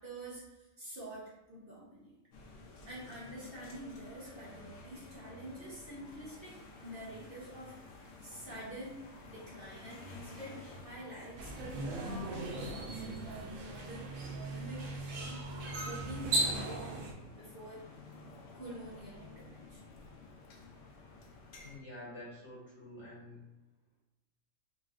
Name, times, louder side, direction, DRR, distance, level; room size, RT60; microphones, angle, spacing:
voice 1, 0.0-2.2 2.8-17.9 18.5-20.0, right 1 dB, 45° right, -6 dB, 1.0 m, -48 dB
sound 1, 2.3-21.8, left 3 dB, 85° left, 1.1 m, -53 dB
sound 2, 11.4-17.1, right 2 dB, 70° right, 1.0 m, -37 dB
voice 2, 21.6-23.4, left 1 dB, 55° left, -5 dB, 1.5 m, -48 dB
4.1 x 3.1 x 2.4 m, 1.0 s
omnidirectional pair, 1.4 m